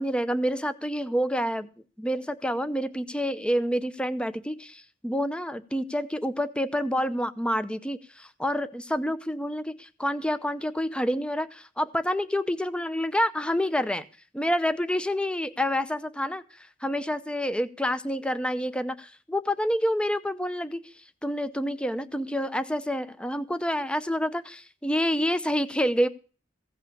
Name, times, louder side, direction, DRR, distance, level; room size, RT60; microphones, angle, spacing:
voice 1, 0.0-1.7 2.0-14.0 14.3-16.4 16.8-20.9 21.2-26.1, equal, 5° left, 12 dB, 0.7 m, -28 dB
16.0 x 5.5 x 8.4 m, 0.37 s
head